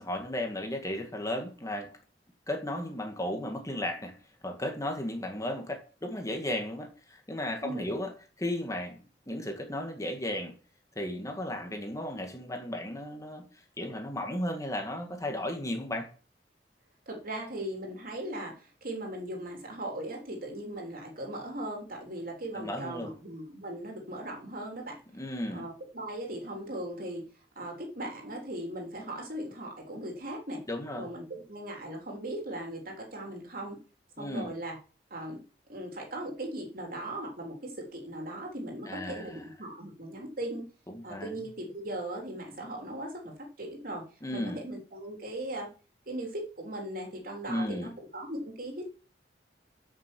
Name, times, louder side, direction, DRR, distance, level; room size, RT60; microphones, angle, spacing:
voice 1, 0.0-2.0 2.5-4.2 4.4-8.1 8.4-10.5 11.0-13.5 13.8-16.1 22.5-23.2 25.1-25.7 30.7-31.1 34.2-34.5 38.9-39.4 40.9-41.4 44.2-44.6 47.5-47.9, left 1 dB, 20° left, 1.8 m, -35 dB
voice 2, 17.1-25.0 25.5-27.2 27.6-30.6 31.0-33.8 34.2-34.8 35.1-35.4 35.7-40.6 41.0-44.0 44.3-45.7 46.1-48.8, right 1 dB, 55° right, 3.5 m, -38 dB
9.0 x 6.6 x 7.6 m
head